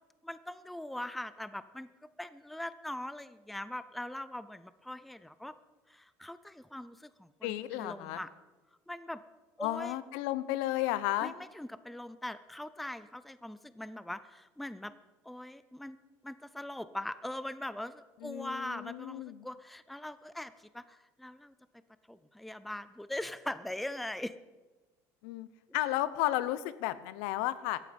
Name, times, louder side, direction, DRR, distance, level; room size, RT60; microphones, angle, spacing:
voice 1, 0.2-1.9 2.2-5.5 5.9-8.3 8.9-9.2 9.6-10.0 11.2-14.9 15.2-16.0 16.2-21.5 22.1-24.4, left 1 dB, ahead, 14 dB, 0.4 m, -41 dB
voice 2, 7.4-8.2 9.6-11.3 18.2-19.4 25.2-25.5 25.7-27.8, left 15 dB, 90° left, 15 dB, 0.9 m, -33 dB
17.0 x 13.5 x 5.3 m, 1.2 s
cardioid pair, 180°, 7 cm